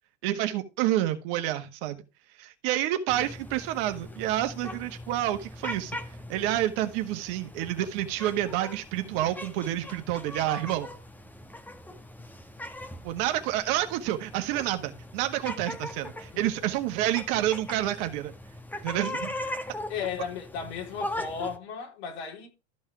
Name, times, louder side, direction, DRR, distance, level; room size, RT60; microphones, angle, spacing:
voice 1, 0.2-2.0 2.4-6.0 6.3-10.9 13.0-18.3 18.8-19.3, right 13 dB, 55° right, 1.6 m, -29 dB
sound 1, 3.1-21.6, left 1 dB, 5° left, 1.2 m, -40 dB
voice 2, 19.9-22.5, left 7 dB, 70° left, 3.9 m, -35 dB
13.5 x 5.6 x 4.7 m
hypercardioid pair, 85°, 34 cm